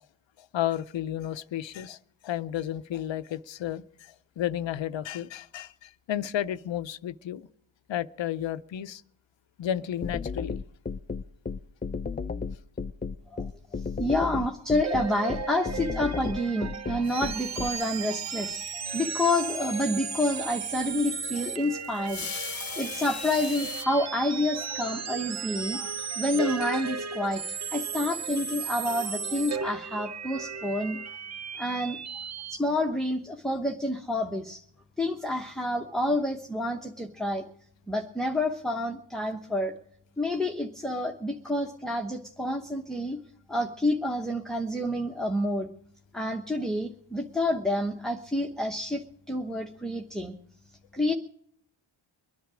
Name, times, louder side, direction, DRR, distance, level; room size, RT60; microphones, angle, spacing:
voice 1, 0.5-2.0 2.2-7.5 7.9-9.0 9.6-10.6, left 11 dB, 70° left, 0.7 m, -32 dB
sound 1, 10.0-17.7, left 5 dB, 20° left, 0.5 m, -33 dB
voice 2, 13.8-31.0 31.6-32.0 32.5-34.6 35.0-37.5 37.9-39.7 40.2-43.2 43.5-45.7 46.1-50.3 50.9-51.1, left 1 dB, ahead, 1.1 m, -29 dB
sound 2, 14.7-32.6, right 6 dB, 35° right, 0.7 m, -35 dB
sound 3, 17.0-23.9, left 7 dB, 50° left, 1.0 m, -42 dB
23.5 x 10.5 x 5.0 m
cardioid pair, 90°, 47 cm